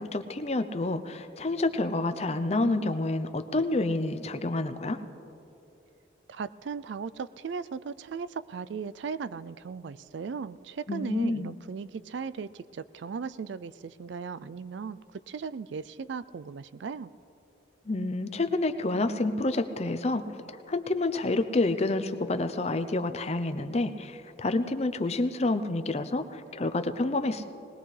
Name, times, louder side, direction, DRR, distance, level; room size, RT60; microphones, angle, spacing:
voice 1, 0.0-5.0 10.9-11.5 17.9-27.4, left 2 dB, 35° left, 9 dB, 0.6 m, -28 dB
voice 2, 6.3-15.0 15.3-17.1, right 5 dB, 65° right, 16 dB, 0.4 m, -37 dB
20.5 x 19.5 x 3.3 m, 2.9 s
head